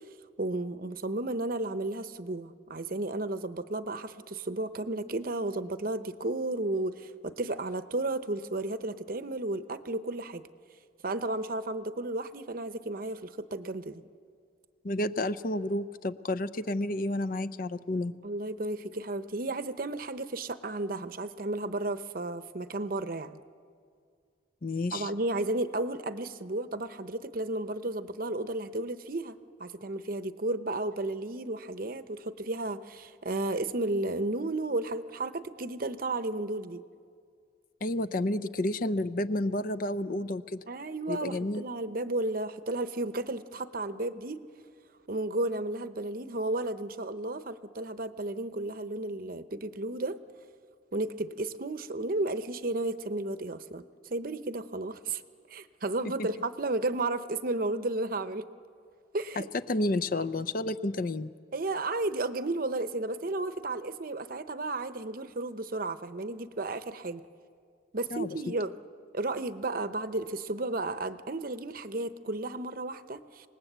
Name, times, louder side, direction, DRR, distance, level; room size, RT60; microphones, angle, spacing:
voice 1, 0.4-10.4 11.0-14.0 18.2-23.4 24.9-36.8 40.7-44.4 45.1-50.2 50.9-55.2 55.5-58.4 59.1-59.5 61.5-67.3 67.9-68.7 69.1-73.5, right 2 dB, 50° right, 11 dB, 0.8 m, -33 dB
voice 2, 14.8-18.2 24.6-25.1 37.8-40.6 41.1-41.6 56.2-56.3 59.7-61.3 68.1-68.4, left 1 dB, 45° left, 11 dB, 0.6 m, -30 dB
27.0 x 19.5 x 8.1 m, 2.2 s
head